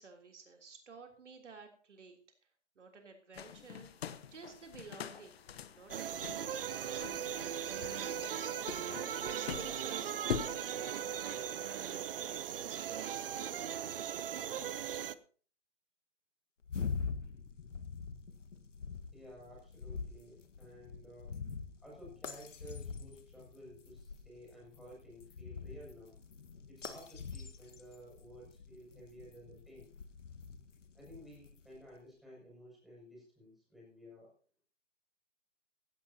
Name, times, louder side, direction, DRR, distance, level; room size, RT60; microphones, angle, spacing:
voice 1, 0.0-2.2 2.8-5.4 5.7-11.5 11.9-13.7, right 4 dB, 75° right, 3 dB, 3.4 m, -53 dB
sound 1, 3.3-10.5, left 8 dB, 55° left, 1.1 m, -44 dB
sound 2, 5.9-15.1, right 9 dB, 50° right, 0.8 m, -38 dB
sound 3, 16.6-31.8, left 5 dB, 85° left, 1.6 m, -44 dB
voice 2, 19.1-21.4 21.8-26.2 26.7-29.9 30.9-34.3, equal, ahead, -5 dB, 6.9 m, -54 dB
16.5 x 14.5 x 2.9 m, 0.42 s
hypercardioid pair, 145°, 36 cm